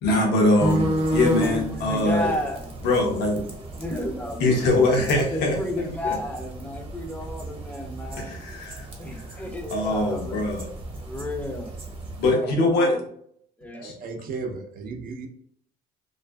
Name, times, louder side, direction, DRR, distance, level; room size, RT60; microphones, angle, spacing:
voice 1, 0.0-2.3 2.8-3.4 4.4-5.6 6.0-6.1 8.2-8.9 9.3-9.4 9.7-10.7 12.2-13.0 13.8-13.9, left 2 dB, 85° left, 0 dB, 0.8 m, -22 dB
sound 1, 0.6-12.3, right 1 dB, 35° right, 0.9 m, -32 dB
voice 2, 1.7-2.7 3.8-4.9 5.2-8.4 9.0-10.4 11.0-11.7 12.3-13.0 13.6-13.8, left 1 dB, 10° left, 2 dB, 0.5 m, -32 dB
voice 3, 13.7-15.3, right 4 dB, 60° right, 4 dB, 0.5 m, -35 dB
2.5 x 2.5 x 2.2 m, 0.66 s
cardioid pair, 110°, 17 cm